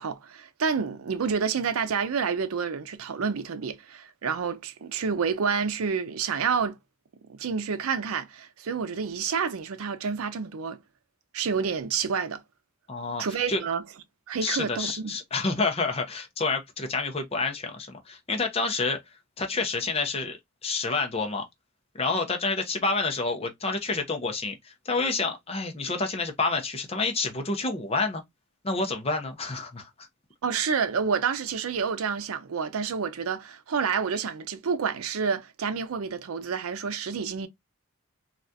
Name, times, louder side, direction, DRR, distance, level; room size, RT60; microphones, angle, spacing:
voice 1, 0.0-6.8 7.2-10.8 11.3-12.4 13.2-13.8 14.3-15.1 30.4-37.5, right 6 dB, 85° right, 0.5 m, -29 dB
voice 2, 12.9-13.6 14.4-19.0 19.4-21.4 21.9-28.2 28.6-29.9, left 3 dB, 30° left, 0.6 m, -28 dB
3.4 x 2.4 x 2.6 m
head